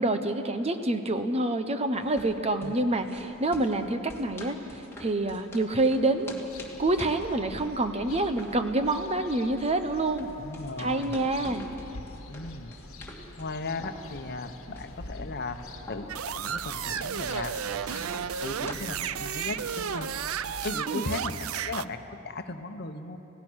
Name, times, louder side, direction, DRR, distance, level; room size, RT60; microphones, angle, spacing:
voice 1, 0.0-6.3 6.8-10.3 10.8-11.7 20.9-21.1, right 2 dB, 30° right, 8 dB, 1.0 m, -27 dB
sound 1, 1.9-19.7, left 1 dB, 10° left, 2.3 m, -47 dB
sound 2, 6.5-20.8, left 2 dB, 75° left, 1.3 m, -46 dB
voice 2, 10.4-11.2 12.3-12.7 13.4-17.6 18.4-20.1 20.6-23.2, left 3 dB, 50° left, 7 dB, 1.1 m, -36 dB
sound 3, 16.1-21.9, right 8 dB, 80° right, 0.5 m, -33 dB
27.5 x 17.0 x 6.4 m, 2.9 s
head